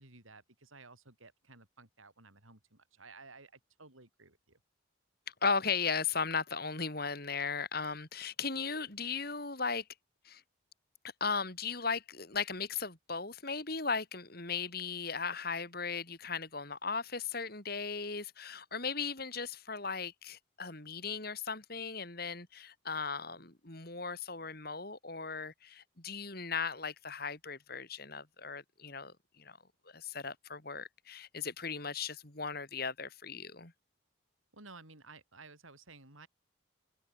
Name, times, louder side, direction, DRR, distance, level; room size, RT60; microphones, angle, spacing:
voice 1, 0.0-4.6 34.5-36.3, right 3 dB, 90° right, 7.2 m, -55 dB
voice 2, 5.3-9.9 10.2-10.4 11.2-29.6 29.9-33.7, left 5 dB, 50° left, 3.7 m, -37 dB
head